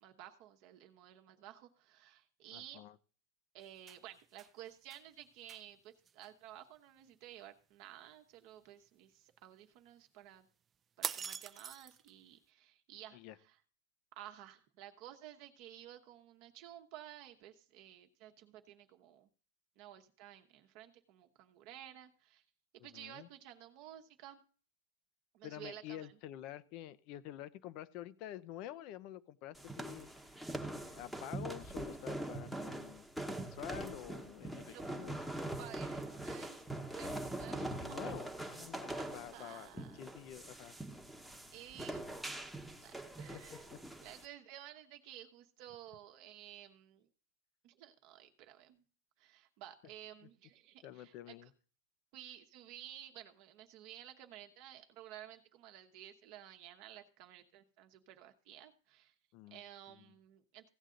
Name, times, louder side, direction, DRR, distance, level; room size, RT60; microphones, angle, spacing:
voice 1, 0.0-2.9 3.5-10.5 11.0-13.6 14.1-19.3 19.8-22.4 22.8-24.4 25.3-26.1 34.7-34.8 35.6-38.0 38.9-40.1 40.4-40.8 41.5-42.5 42.8-47.1 47.6-48.8 49.2-51.5 52.1-59.1 59.5-60.7, right 12 dB, 50° right, 5 dB, 1.0 m, -54 dB
voice 2, 2.5-3.0 13.1-13.4 22.8-23.3 25.4-30.4 30.6-33.1 33.3-35.2 37.8-40.7 43.3-43.4 50.8-51.5 59.3-59.6 60.0-60.1, left 12 dB, 45° left, 17 dB, 0.7 m, -49 dB
sound 1, 3.6-4.5 4.9-5.0 5.5-5.6 6.1-6.3 11.0-12.1, right 7 dB, 20° right, 0.5 m, -42 dB
sound 2, 29.5-44.2, right 1 dB, ahead, 1.0 m, -43 dB
16.0 x 8.1 x 3.8 m, 0.41 s
supercardioid pair, 145°, 0 cm